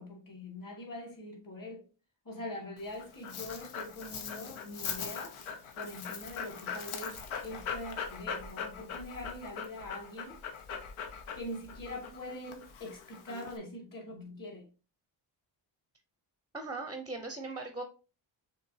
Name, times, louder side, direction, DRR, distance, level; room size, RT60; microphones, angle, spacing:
voice 1, 0.0-1.9 2.2-5.4 5.7-10.4 11.3-14.7, left 1 dB, 40° left, 2.3 m, -43 dB
Dog, 2.8-13.6, left 6 dB, 85° left, 0.9 m, -41 dB
voice 2, 16.5-17.8, right 3 dB, 10° right, 0.6 m, -39 dB
6.4 x 3.1 x 2.7 m
cardioid pair, 115°, 48 cm